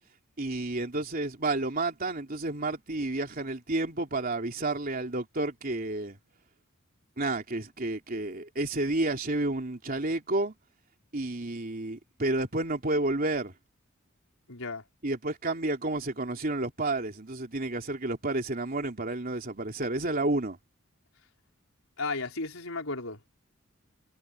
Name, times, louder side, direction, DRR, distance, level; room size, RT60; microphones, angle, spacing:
voice 1, 0.4-6.2 7.2-10.5 11.1-13.5 15.0-20.6, right 2 dB, 45° right, 3.2 m, -30 dB
voice 2, 14.5-14.8 22.0-23.3, left 3 dB, 75° left, 4.9 m, -34 dB
head